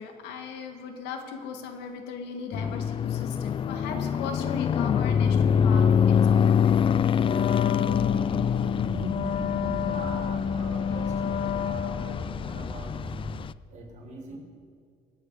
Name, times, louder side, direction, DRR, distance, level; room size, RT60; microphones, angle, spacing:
voice 1, 0.0-7.0, left 5 dB, 90° left, 4 dB, 2.0 m, -38 dB
sound 1, 2.5-13.5, left 7 dB, 30° left, 0.3 m, -25 dB
Wind instrument woodwind instrument, 7.2-12.3, left 7 dB, 50° left, 0.8 m, -30 dB
sound 2, 7.9-13.3, left 2 dB, 15° left, 1.1 m, -38 dB
voice 2, 8.8-12.9 13.7-14.4, right 3 dB, 45° right, -1 dB, 4.6 m, -41 dB
23.0 x 9.2 x 4.9 m, 2.1 s
cardioid pair, 110°, 17 cm